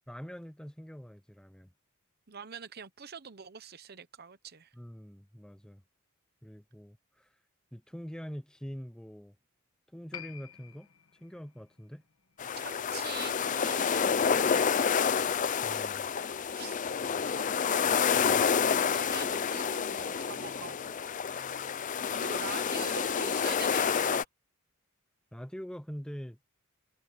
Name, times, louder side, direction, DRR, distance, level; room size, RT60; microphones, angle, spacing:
voice 1, 0.1-1.7 4.7-5.8 6.4-7.3 7.7-9.4 9.9-10.9 11.2-12.0 15.6-16.1 25.3-26.4, equal, 5° left, 0.9 m, -44 dB
voice 2, 2.3-4.7 12.6-15.2 16.5-16.8 17.2-21.1 22.1-24.2, right 6 dB, 50° right, 0.9 m, -45 dB
Piano, 10.1-17.1 17.3-17.4, left 9 dB, 70° left, 1.3 m, -53 dB
sound 1, 12.4-24.2, left 6 dB, 35° left, 0.5 m, -29 dB
head